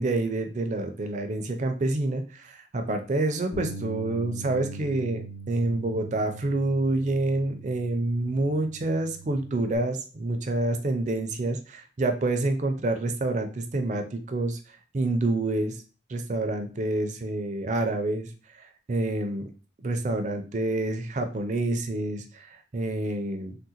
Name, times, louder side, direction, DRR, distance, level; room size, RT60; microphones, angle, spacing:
voice 1, 0.0-14.6 14.9-15.8 16.1-18.3 18.6-19.5 19.8-23.6, right 2 dB, 40° right, 6 dB, 0.4 m, -28 dB
Bass guitar, 3.5-9.8, right 2 dB, 80° left, 0.7 m, -41 dB
3.6 x 2.1 x 2.8 m, 0.37 s
head